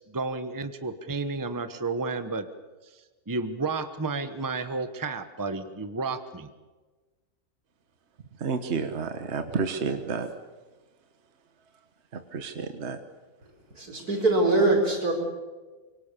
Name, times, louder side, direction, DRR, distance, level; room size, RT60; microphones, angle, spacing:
voice 1, 0.0-2.5 2.9-6.5, right 3 dB, 15° right, 10 dB, 1.1 m, -32 dB
voice 2, 8.4-10.3 12.1-13.0, right 5 dB, 50° right, 8 dB, 1.5 m, -30 dB
voice 3, 13.8-15.1, right 2 dB, 85° right, 2 dB, 5.2 m, -22 dB
25.5 x 23.5 x 6.9 m, 1.3 s
omnidirectional pair, 1.6 m